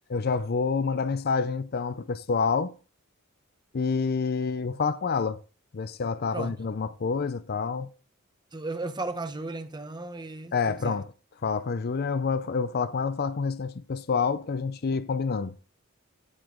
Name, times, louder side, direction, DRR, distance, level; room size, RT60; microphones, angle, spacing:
voice 1, 0.1-2.7 3.7-5.4 5.7-7.9 10.5-11.1 11.4-15.5, left 5 dB, 50° left, 0.5 m, -28 dB
voice 2, 6.3-6.6 8.5-11.0, right 2 dB, 20° right, 0.8 m, -35 dB
15.0 x 5.1 x 3.8 m
head